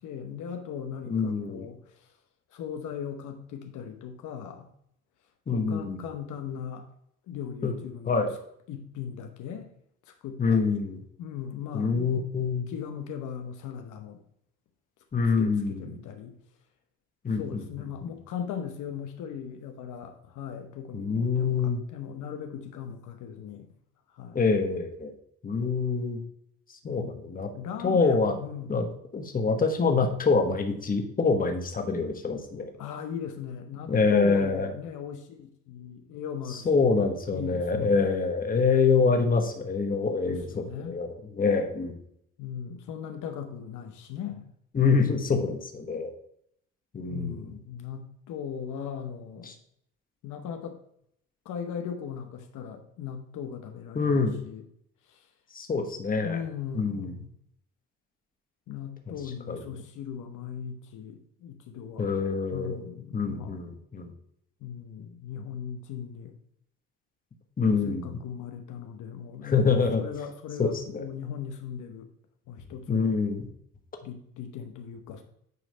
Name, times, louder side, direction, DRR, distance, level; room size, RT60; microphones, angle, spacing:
voice 1, 0.0-2.0 2.5-4.7 5.5-6.9 7.3-8.2 8.7-9.7 10.1-10.8 11.2-12.1 12.7-14.2 15.4-16.4 17.3-23.7 24.1-24.4 26.8-27.3 27.5-28.8 32.8-36.9 37.3-37.9 40.2-41.0 42.4-44.5 47.1-49.5 50.2-50.8 51.4-54.6 55.1-55.3 56.2-57.3 58.7-62.1 62.5-63.8 64.6-66.3 67.6-69.6 70.0-72.1 72.5-73.2 74.0-75.2, left 8 dB, 70° left, 6 dB, 0.9 m, -38 dB
voice 2, 1.1-1.7 5.5-6.0 7.6-7.8 8.1-8.3 10.4-11.0 11.7-12.6 15.1-15.9 17.2-17.4 20.9-21.8 24.3-25.1 25.4-26.2 26.8-27.5 27.8-28.3 28.7-28.9 29.1-32.7 33.9-34.7 36.5-41.9 44.7-46.1 46.9-47.4 49.5-49.6 53.9-54.4 55.5-56.4 56.7-57.1 59.5-59.6 62.0-62.8 63.1-64.1 67.6-68.2 69.4-70.0 70.6-71.0 72.9-73.5, left 4 dB, 25° left, 5 dB, 1.1 m, -25 dB
9.4 x 3.2 x 5.4 m, 0.71 s
cardioid pair, 100°, 31 cm